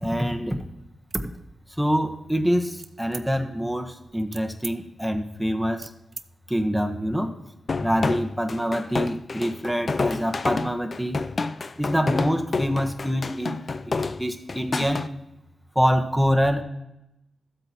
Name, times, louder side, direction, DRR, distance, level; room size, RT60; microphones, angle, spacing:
voice 1, 0.0-0.6 1.8-5.9 6.5-7.4 7.8-11.2 11.8-13.6 13.8-15.1 15.7-16.6, equal, 5° right, 5 dB, 1.2 m, -25 dB
sound 1, 1.0-2.1 2.8-3.6 4.0-6.3, right 5 dB, 60° right, 0.5 m, -39 dB
sound 2, 7.7-15.1, left 4 dB, 50° left, 0.5 m, -28 dB
13.0 x 7.9 x 3.0 m, 0.87 s
cardioid pair, 50°, 0 cm